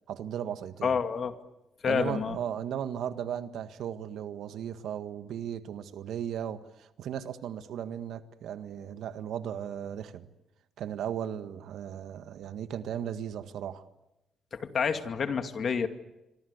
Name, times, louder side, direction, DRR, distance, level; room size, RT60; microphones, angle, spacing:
voice 1, 0.1-0.9 1.9-10.3 10.8-13.8, right 9 dB, 75° right, 1.6 m, -36 dB
voice 2, 0.8-1.4 1.8-2.4 14.5-15.9, left 6 dB, 50° left, 2.3 m, -28 dB
26.5 x 24.5 x 8.2 m
cardioid pair, 90°, 0 cm